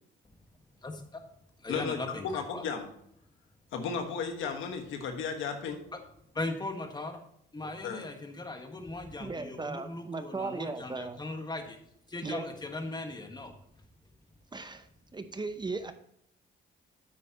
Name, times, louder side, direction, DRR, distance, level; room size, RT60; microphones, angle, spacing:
voice 1, 0.8-1.2 1.6-2.7 6.3-7.2 7.5-11.8 12.1-13.5, left 2 dB, 20° left, 5 dB, 1.6 m, -38 dB
voice 2, 2.2-2.9 3.7-5.8 7.8-8.0, left 6 dB, 85° left, 5 dB, 1.5 m, -34 dB
voice 3, 9.2-11.2 12.2-12.5 14.5-14.9 15.1-15.9, right 3 dB, 20° right, 9 dB, 0.7 m, -37 dB
9.6 x 8.5 x 2.9 m, 0.71 s
cardioid pair, 90°, 20 cm